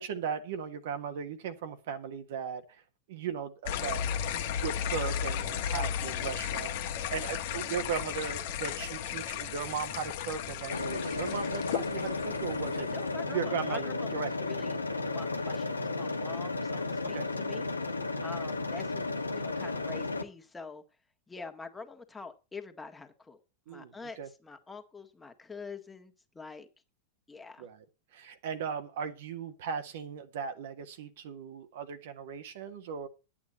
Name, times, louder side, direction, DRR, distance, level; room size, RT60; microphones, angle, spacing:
voice 1, 0.0-2.8 3.1-4.0 4.4-12.9 13.3-14.3 17.1-17.3 23.7-24.3 27.6-27.8 28.1-33.1, right 7 dB, 55° right, 8 dB, 1.4 m, -37 dB
sound 1, 3.7-13.1, left 9 dB, 50° left, 1.3 m, -35 dB
sound 2, 10.7-20.2, left 3 dB, 80° left, 1.2 m, -33 dB
voice 2, 12.8-17.7 18.2-20.8 21.3-23.4 23.7-26.7 27.3-27.7, left 4 dB, 10° left, 6 dB, 1.7 m, -45 dB
11.0 x 8.8 x 4.2 m, 0.30 s
figure-of-eight pair, 90°, 0 cm